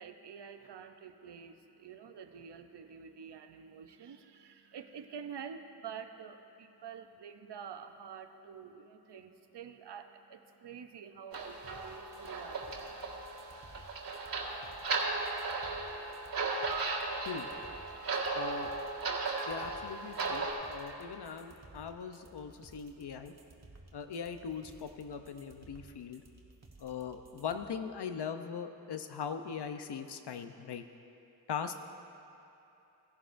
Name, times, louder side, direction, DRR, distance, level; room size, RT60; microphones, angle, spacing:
voice 1, 0.0-12.9, right 7 dB, 80° right, 8 dB, 0.7 m, -48 dB
sound 1, 11.3-20.5, right 3 dB, 55° right, 1.8 m, -36 dB
sound 2, 11.6-27.6, right 2 dB, 40° right, 1.4 m, -57 dB
voice 2, 18.3-18.7 19.5-23.3 23.9-26.2 26.8-30.8 31.5-31.7, left 6 dB, 75° left, 8 dB, 0.7 m, -40 dB
17.0 x 11.0 x 2.6 m, 3.0 s
cardioid pair, 60°, 41 cm